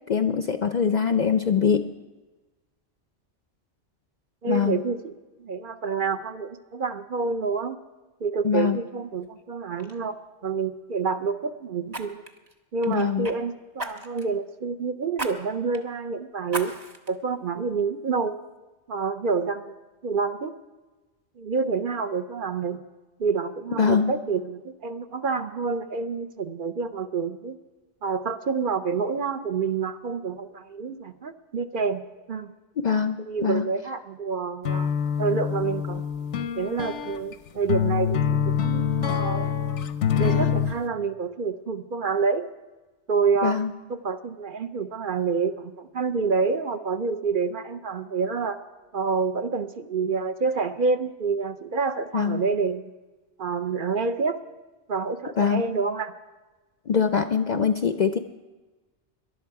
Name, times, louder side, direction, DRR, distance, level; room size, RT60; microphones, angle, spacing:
voice 1, 0.1-1.9 4.5-4.8 8.4-8.8 12.9-13.3 23.8-24.1 32.8-33.7 43.4-43.7 52.1-52.4 55.4-55.6 56.9-58.2, left 6 dB, 55° left, 9 dB, 0.5 m, -23 dB
voice 2, 4.4-5.1 5.4-7.8 8.2-10.1 10.4-12.2 12.7-16.7 17.1-18.3 18.9-20.5 21.4-22.8 23.2-27.5 28.0-32.0 32.3-32.5 33.3-36.1 36.6-39.5 40.2-42.5 43.1-43.6 43.9-48.6 48.9-52.9 53.4-54.4 54.9-56.1, right 5 dB, 55° right, 9 dB, 0.8 m, -28 dB
Fire, 9.2-9.4 9.8-10.0 11.9-13.4 13.8-14.3 15.1-15.3 15.7-15.8 16.5-17.1 17.6-17.7, right 2 dB, 35° right, 1.1 m, -35 dB
sound 1, 34.7-40.8, left 8 dB, 85° left, 1.0 m, -25 dB
19.0 x 11.5 x 4.7 m, 1.2 s
omnidirectional pair, 1.2 m